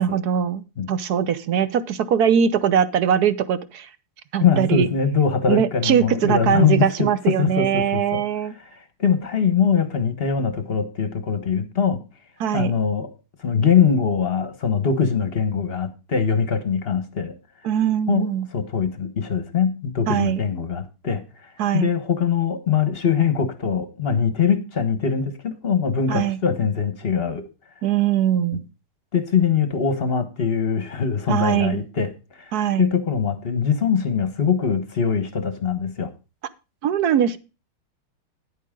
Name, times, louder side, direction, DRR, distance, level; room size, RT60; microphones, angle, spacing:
voice 1, 0.0-3.9 4.3-4.9 5.5-8.5 12.4-12.7 17.6-18.5 20.1-20.4 21.6-21.9 26.1-26.4 27.8-28.6 31.3-31.8 32.5-32.9 36.8-37.4, right 9 dB, 65° right, 14 dB, 1.0 m, -21 dB
voice 2, 4.4-7.1 7.4-8.2 8.7-12.0 12.5-13.1 13.4-17.3 18.1-18.3 18.5-21.2 21.7-27.5 29.1-32.1 32.4-32.5 32.8-36.1, left 6 dB, 35° left, 10 dB, 1.1 m, -22 dB
10.5 x 9.4 x 3.7 m, 0.31 s
omnidirectional pair, 2.3 m